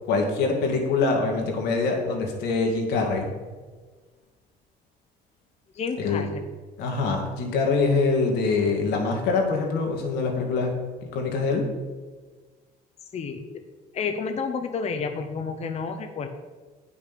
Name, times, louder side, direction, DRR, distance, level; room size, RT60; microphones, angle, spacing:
voice 1, 0.1-3.3 6.0-6.3 6.8-10.7 11.1-11.6, left 4 dB, 90° left, 1 dB, 2.0 m, -24 dB
voice 2, 5.7-6.3 13.1-13.6 13.9-16.3, left 5 dB, 40° left, 6 dB, 0.8 m, -30 dB
8.9 x 6.0 x 5.9 m, 1.4 s
cardioid pair, 110°, 17 cm